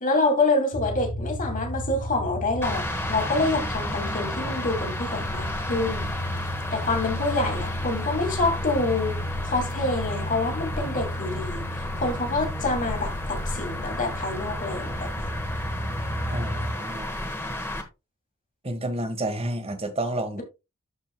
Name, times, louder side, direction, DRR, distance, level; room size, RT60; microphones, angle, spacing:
voice 1, 0.0-6.1 6.7-11.6 12.0-15.3, left 2 dB, 35° left, 2.4 m, -27 dB
sound 1, 0.7-16.7, left 1 dB, 75° left, 3.2 m, -33 dB
sound 2, 2.6-17.8, left 1 dB, 10° left, 1.3 m, -33 dB
voice 2, 16.3-17.1 18.6-20.4, right 1 dB, 25° right, 1.3 m, -30 dB
13.5 x 4.6 x 2.2 m
head